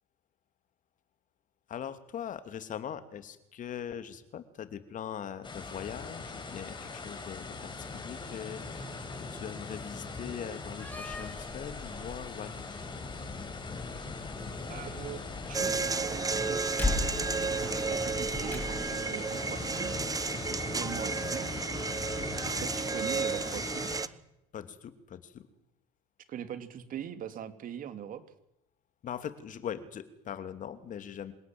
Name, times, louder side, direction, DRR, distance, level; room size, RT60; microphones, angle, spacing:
voice 1, 1.7-8.9 9.3-12.6 20.4-20.8 24.5-25.5 29.0-31.3, left 9 dB, 45° left, 11 dB, 2.7 m, -41 dB
sound 1, 5.4-24.0, left 4 dB, 25° left, 5.8 m, -41 dB
Slam, 10.7-19.1, left 2 dB, 10° left, 7.5 m, -39 dB
voice 2, 14.7-20.0 20.2-21.7 22.4-23.9 26.3-28.2, right 9 dB, 50° right, 10 dB, 2.9 m, -42 dB
sound 2, 15.5-24.1, right 4 dB, 20° right, 1.1 m, -32 dB
27.0 x 18.0 x 7.9 m, 0.86 s
hypercardioid pair, 75°, 18 cm